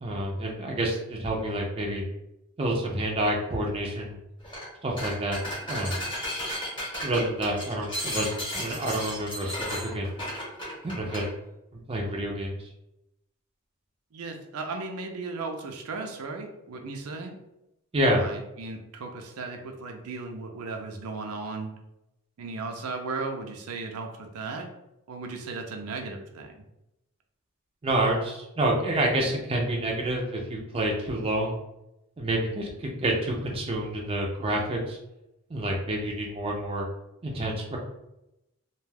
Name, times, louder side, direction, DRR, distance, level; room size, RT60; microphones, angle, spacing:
voice 1, 0.0-2.0 2.6-4.2 4.8-5.4 5.7-6.0 7.0-10.1 10.8-11.2 11.9-12.6 17.9-18.2 27.8-31.6 32.2-35.0 35.5-36.8 37.2-37.8, right 1 dB, 25° right, -1 dB, 0.4 m, -28 dB
sound 1, 4.4-4.7 5.0-11.3, equal, 20° left, 0.9 m, -34 dB
voice 2, 14.1-17.4 18.1-21.7 22.4-24.7 25.1-26.6, right 3 dB, 90° right, 3 dB, 0.5 m, -36 dB
2.4 x 2.2 x 3.3 m, 0.89 s
head